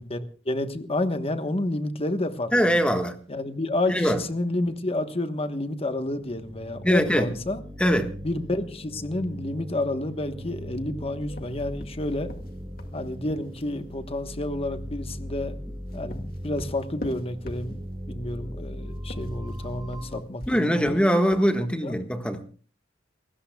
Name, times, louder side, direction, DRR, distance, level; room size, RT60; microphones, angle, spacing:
voice 1, 0.0-2.7 3.3-7.6 8.2-12.3 12.9-15.6 15.9-17.8 18.1-21.0 21.8-22.0, left 1 dB, 30° left, 1.2 m, -30 dB
voice 2, 2.5-3.1 3.9-4.2 6.8-7.3 7.8-8.1 20.5-22.4, equal, 5° left, 1.5 m, -22 dB
sound 1, 5.9-20.2, equal, 20° right, 1.1 m, -39 dB
sound 2, 11.3-13.9 15.6-18.1 19.0-21.6, equal, 50° left, 2.2 m, -42 dB
29.0 x 15.5 x 2.3 m
head